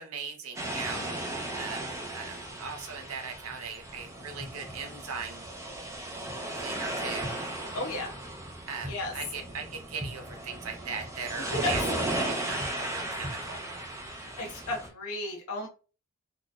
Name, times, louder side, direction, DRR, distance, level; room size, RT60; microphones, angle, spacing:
voice 1, 0.0-5.5 6.5-7.3 8.7-13.7, right 5 dB, 70° right, 4 dB, 0.7 m, -39 dB
sound 1, 0.6-14.9, right 1 dB, 15° right, 0.5 m, -36 dB
voice 2, 7.7-8.1 8.9-9.1 11.5-11.7 14.1-15.7, left 2 dB, 70° left, 1 dB, 0.7 m, -33 dB
3.7 x 2.4 x 2.3 m, 0.35 s
head